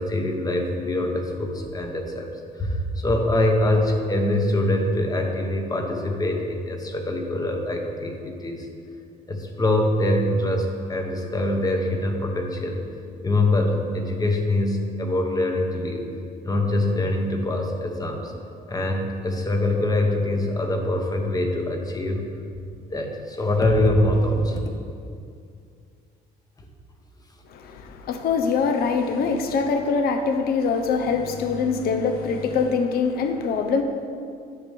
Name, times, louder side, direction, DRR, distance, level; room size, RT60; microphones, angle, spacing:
voice 1, 0.0-2.3 2.6-8.7 9.3-12.8 13.2-16.1 16.4-18.3 18.7-22.3 22.9-24.6, left 1 dB, 20° left, 3 dB, 1.0 m, -24 dB
voice 2, 27.5-33.8, left 5 dB, 65° left, 6 dB, 0.7 m, -23 dB
9.5 x 6.1 x 3.5 m, 2.4 s
cardioid pair, 110°, 17 cm